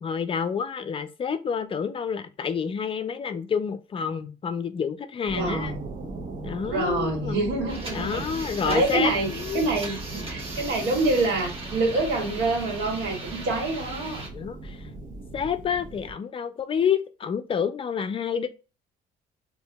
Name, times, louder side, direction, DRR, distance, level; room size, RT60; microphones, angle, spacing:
voice 1, 0.0-5.7 6.4-7.4 7.9-9.6 14.3-14.9 15.3-18.5, left 7 dB, 35° left, 0.4 m, -28 dB
sound 1, 5.3-16.1, right 3 dB, 50° right, 1.5 m, -38 dB
voice 2, 5.4-5.9 6.7-14.2, right 2 dB, 75° right, 1.7 m, -27 dB
sound 2, 7.7-14.3, right 2 dB, 35° right, 1.3 m, -38 dB
4.4 x 2.7 x 2.3 m
cardioid pair, 110°, 17 cm